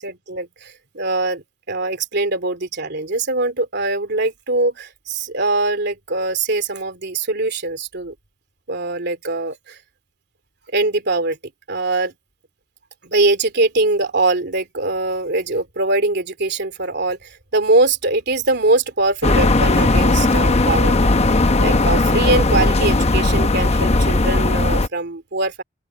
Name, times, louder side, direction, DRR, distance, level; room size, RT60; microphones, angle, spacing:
voice 1, 0.0-8.1 8.7-9.8 10.7-11.4 11.7-12.1 13.0-20.9 21.6-25.6, right 2 dB, 60° right, 3.1 m, -22 dB
sound 1, 19.2-24.9, left 2 dB, 35° left, 0.8 m, -17 dB
open air
head